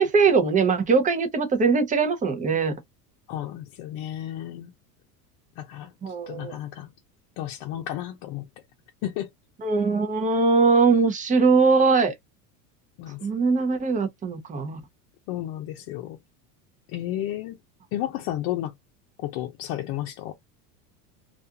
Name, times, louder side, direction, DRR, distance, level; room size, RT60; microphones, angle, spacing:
voice 1, 0.0-2.8 6.0-6.5 9.6-12.1 13.2-14.8, right 4 dB, 20° right, 0.6 m, -21 dB
voice 2, 3.3-4.7 5.6-5.9 6.3-6.9 7.4-8.5 9.0-9.3 13.0-13.3 15.3-16.2 16.9-17.6 17.9-18.7 19.2-20.3, left 12 dB, 55° left, 0.7 m, -32 dB
2.5 x 2.3 x 2.7 m
supercardioid pair, 120°, 44 cm